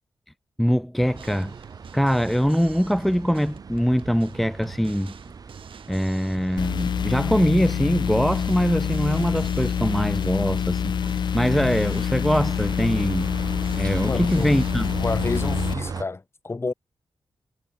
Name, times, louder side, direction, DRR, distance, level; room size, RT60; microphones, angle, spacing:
voice 1, 0.6-1.6 1.9-5.1 5.9-13.4 13.8-14.9, equal, ahead, 0.6 m, -23 dB
sound 1, 1.0-16.0, right 5 dB, 45° right, 0.8 m, -38 dB
Drum kit, 1.2-14.7, right 7 dB, 80° right, 3.6 m, -47 dB
sound 2, 6.6-15.7, left 8 dB, 60° left, 0.3 m, -26 dB
voice 2, 14.0-14.6 15.0-16.7, left 3 dB, 30° left, 2.4 m, -29 dB
wide cardioid pair, 125°, 9 cm